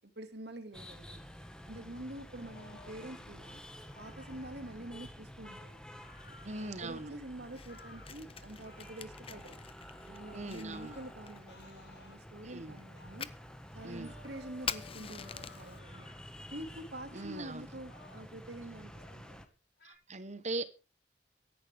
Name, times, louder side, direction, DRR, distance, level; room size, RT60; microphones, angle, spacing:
voice 1, 0.2-1.2 1.6-3.6 4.0-5.8 6.3-9.6 10.1-13.3 13.7-16.1 16.5-19.4, right 1 dB, 70° right, 2.3 m, -47 dB
sound 1, 0.7-19.5, equal, 5° left, 1.5 m, -50 dB
sound 2, 2.3-3.2 3.9-5.0 6.0-7.2 7.7-8.1 8.6-9.0 9.4-9.6 10.2-11.2 11.5-12.2 13.0-13.2 13.9-14.5 15.0-16.2 17.1-17.4 17.8-18.4 18.9-19.2 19.8-19.9, left 2 dB, 70° left, 5.4 m, -58 dB
voice 2, 6.5-7.1 10.3-11.0 12.4-12.8 13.8-14.1 17.1-17.7 19.8-20.6, right 2 dB, 40° right, 1.1 m, -40 dB
Fire, 7.4-15.8, left 7 dB, 35° left, 0.7 m, -47 dB
23.5 x 11.0 x 3.5 m
head